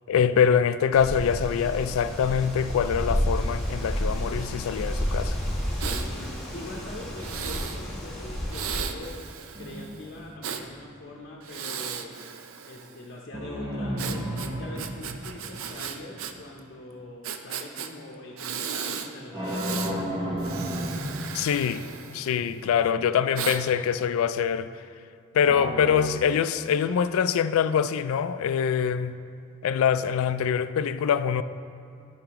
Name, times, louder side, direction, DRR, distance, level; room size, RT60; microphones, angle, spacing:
voice 1, 0.1-5.4 21.3-21.8 22.1-24.7 25.3-29.2 29.6-31.4, left 7 dB, 85° left, 0.3 m, -24 dB
Wind, 0.9-8.8, equal, ahead, 1.3 m, -30 dB
voice 2, 5.7-9.3 9.6-12.1 12.6-19.9, left 1 dB, 50° left, 0.7 m, -43 dB
Breathing, 5.8-6.1 7.2-7.8 8.5-10.6 11.4-13.0 14.0-16.3 16.6-16.7 17.2-17.9 18.4-19.1 19.4-19.9 20.4-22.6 23.3-23.6, right 7 dB, 80° right, 0.5 m, -36 dB
sound 1, 9.5-10.7 13.3-16.0 19.3-22.1 25.5-26.1, equal, 25° right, 1.0 m, -33 dB
11.5 x 5.8 x 3.0 m
head